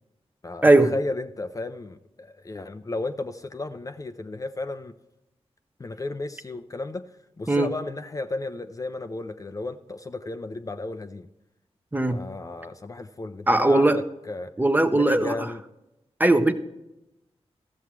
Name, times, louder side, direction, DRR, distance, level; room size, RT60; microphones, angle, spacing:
voice 1, 0.4-4.9 5.8-7.1 7.4-11.3 12.1-14.5 14.9-15.6, left 2 dB, 30° left, 9 dB, 0.5 m, -34 dB
voice 2, 13.5-14.0 14.6-15.5 16.2-16.5, right 2 dB, 15° right, 8 dB, 0.8 m, -19 dB
13.5 x 7.1 x 4.6 m, 0.91 s
wide cardioid pair, 75°, 11 cm